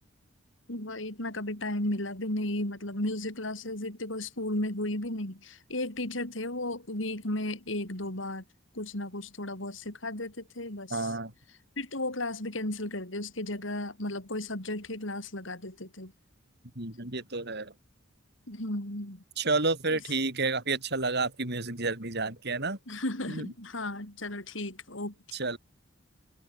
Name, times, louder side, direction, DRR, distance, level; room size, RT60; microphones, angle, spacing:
voice 1, 0.7-8.4 8.7-11.1 11.8-16.1 18.5-19.2 19.9-20.0 22.9-25.1, left 1 dB, 70° left, 5.7 m, -34 dB
voice 2, 10.9-11.3 16.8-17.7 19.4-22.8 23.3-23.5 25.3-25.6, right 3 dB, 55° right, 5.6 m, -30 dB
head